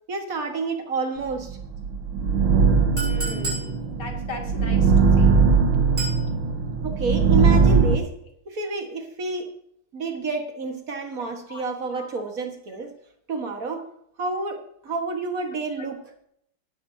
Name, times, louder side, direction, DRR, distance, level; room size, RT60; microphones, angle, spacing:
voice 1, 0.1-1.6 6.8-8.1 8.5-9.5 9.9-12.9 13.3-13.8 14.2-16.0, right 3 dB, 45° right, 4 dB, 1.9 m, -29 dB
sound 1, 1.5-8.0, right 5 dB, 85° right, 2.1 m, -20 dB
voice 2, 3.0-5.3 11.5-12.1 15.8-15.9, left 3 dB, 85° left, 0 dB, 3.4 m, -39 dB
Chink clink, 3.0-3.7 6.0-6.2, right 1 dB, 20° right, 6.3 m, -31 dB
17.5 x 13.0 x 2.8 m, 0.71 s
omnidirectional pair, 2.2 m